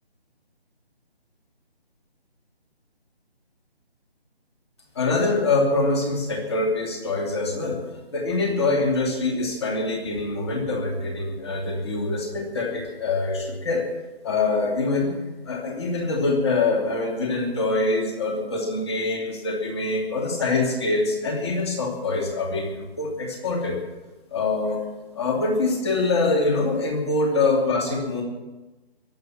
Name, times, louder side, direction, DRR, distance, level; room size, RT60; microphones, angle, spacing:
voice 1, 4.9-13.8 14.2-15.1 15.4-23.8 24.3-24.8 25.1-28.2, left 3 dB, 25° left, 0 dB, 2.8 m, -24 dB
22.0 x 8.0 x 7.3 m, 1.1 s
figure-of-eight pair, 170°, 32 cm